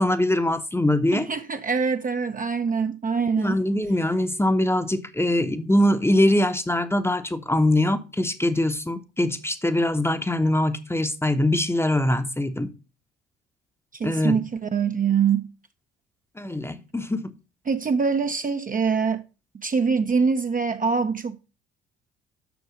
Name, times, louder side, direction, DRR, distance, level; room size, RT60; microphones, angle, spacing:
voice 1, 0.0-1.3 3.4-12.7 14.0-14.4 16.4-17.3, left 1 dB, 5° left, 1.0 m, -23 dB
voice 2, 1.1-3.6 13.9-15.5 17.7-19.2 19.5-21.4, right 5 dB, 25° right, 0.7 m, -24 dB
7.0 x 6.5 x 6.2 m
figure-of-eight pair, 50°, 33 cm